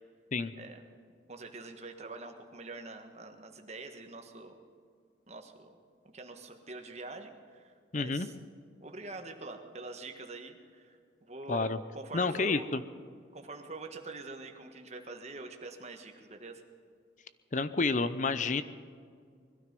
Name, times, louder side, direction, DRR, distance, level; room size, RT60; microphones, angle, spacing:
voice 1, 1.3-4.6 5.3-5.8 6.1-8.3 8.8-12.7 13.3-16.6, right 3 dB, 35° right, 4 dB, 1.5 m, -45 dB
voice 2, 7.9-8.3 11.5-11.8 12.1-12.8 17.5-18.6, left 3 dB, 40° left, 13 dB, 0.6 m, -29 dB
21.5 x 12.5 x 5.3 m, 2.2 s
head